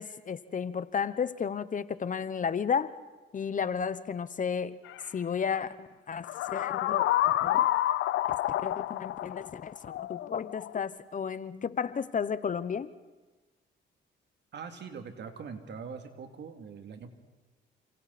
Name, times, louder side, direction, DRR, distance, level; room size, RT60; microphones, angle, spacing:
voice 1, 0.0-2.9 3.3-4.8 5.1-7.7 8.6-12.9, left 6 dB, 40° left, 15 dB, 1.0 m, -33 dB
sound 1, 4.9-5.0 6.2-10.8, left 14 dB, 80° left, 0.7 m, -29 dB
voice 2, 14.5-17.1, right 6 dB, 60° right, 6 dB, 2.8 m, -42 dB
29.5 x 27.0 x 4.3 m, 1.3 s
cardioid pair, 90°, 20 cm